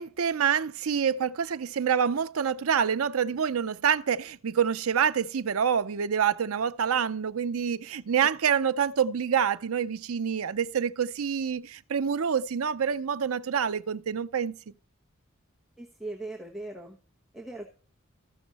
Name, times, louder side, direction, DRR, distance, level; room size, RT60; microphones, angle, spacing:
voice 1, 0.0-14.6, right 7 dB, 90° right, 0.5 m, -27 dB
voice 2, 15.8-17.0 17.3-17.7, right 2 dB, ahead, 1.1 m, -39 dB
14.0 x 6.2 x 4.1 m
head